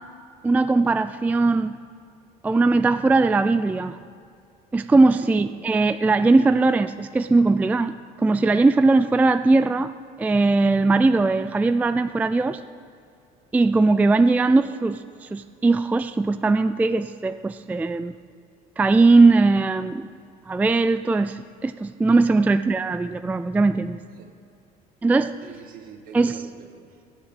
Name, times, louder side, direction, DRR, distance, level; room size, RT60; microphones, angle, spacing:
voice 1, 0.4-1.8 2.4-4.0 4.7-9.9 10.2-12.6 13.5-18.1 18.8-20.1 20.5-24.0 25.0-25.3 26.1-26.4, right 3 dB, 10° right, 11 dB, 0.3 m, -19 dB
voice 2, 5.2-5.8 22.3-22.6 24.1-24.3 25.4-27.0, right 6 dB, 60° right, 4 dB, 2.1 m, -45 dB
15.5 x 7.5 x 8.9 m, 2.5 s
cardioid pair, 135°, 17 cm